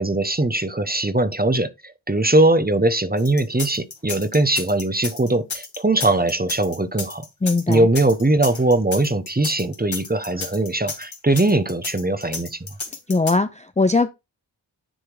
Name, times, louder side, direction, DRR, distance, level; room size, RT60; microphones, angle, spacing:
voice 1, 0.0-7.2 7.7-12.7, right 2 dB, 20° right, 1.0 m, -20 dB
sound 1, 3.2-13.3, left 4 dB, 75° left, 1.9 m, -32 dB
voice 2, 7.4-7.9 13.1-14.1, left 3 dB, 15° left, 0.5 m, -20 dB
10.0 x 3.5 x 4.7 m
wide cardioid pair, 45°, 46 cm